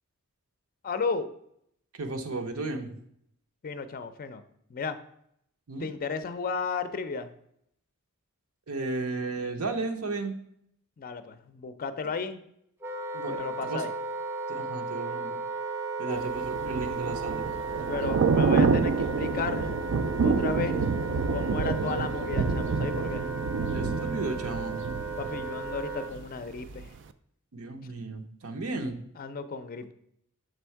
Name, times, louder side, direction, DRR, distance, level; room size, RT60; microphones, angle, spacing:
voice 1, 0.8-1.3 3.6-4.4 4.7-5.0 5.8-7.3 11.0-12.4 13.3-13.9 16.0-16.3 17.9-19.7 20.2-20.8 21.3-23.3 25.2-26.9 29.2-29.9, left 4 dB, 40° left, 11 dB, 0.4 m, -34 dB
voice 2, 2.0-2.9 5.7-5.9 8.7-10.4 13.1-13.4 13.7-13.8 14.5-15.4 16.0-17.5 20.5-20.6 23.7-24.8 27.5-29.0, right 3 dB, 75° right, 4 dB, 0.8 m, -34 dB
Wind instrument woodwind instrument, 12.8-26.2, right 3 dB, 10° right, 0.6 m, -35 dB
Thunder / Rain, 16.3-26.2 26.6-26.8, right 4 dB, 60° right, 0.4 m, -28 dB
6.8 x 3.5 x 4.5 m, 0.72 s
head